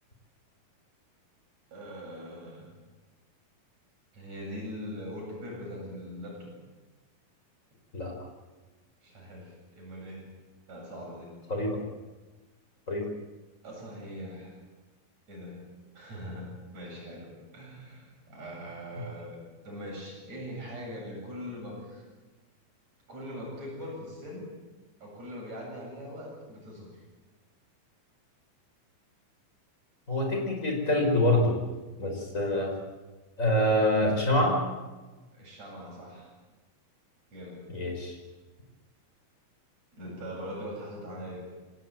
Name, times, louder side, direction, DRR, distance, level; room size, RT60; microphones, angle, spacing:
voice 1, 1.7-2.7 4.1-6.5 9.0-10.3 10.7-11.4 13.6-14.6 15.3-15.6 15.9-19.4 19.6-22.1 23.1-24.5 25.0-27.0 35.3-36.3 37.3-37.8 39.9-41.4, equal, 45° right, -1 dB, 9.2 m, -41 dB
voice 2, 11.5-11.8 12.9-13.1 30.1-31.6 32.0-32.8 33.4-34.6 37.7-38.2, left 1 dB, 20° left, 1 dB, 5.5 m, -25 dB
25.5 x 18.0 x 9.3 m, 1.2 s
omnidirectional pair, 4.2 m